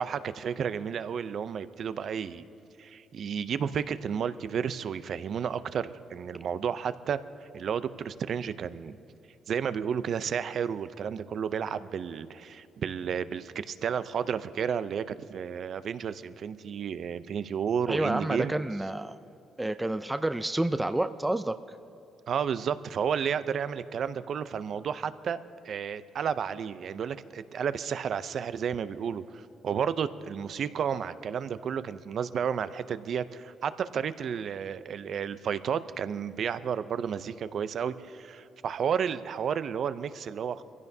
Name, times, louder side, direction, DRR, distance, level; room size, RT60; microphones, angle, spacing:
voice 1, 0.0-2.4 2.8-7.2 7.5-9.0 9.5-18.5 22.3-25.4 25.6-40.6, right 7 dB, 60° right, 13 dB, 0.5 m, -32 dB
voice 2, 17.9-19.2 19.6-21.6, right 1 dB, 10° right, 10 dB, 0.4 m, -29 dB
23.0 x 16.0 x 2.7 m, 2.8 s
cardioid pair, 90°, 0 cm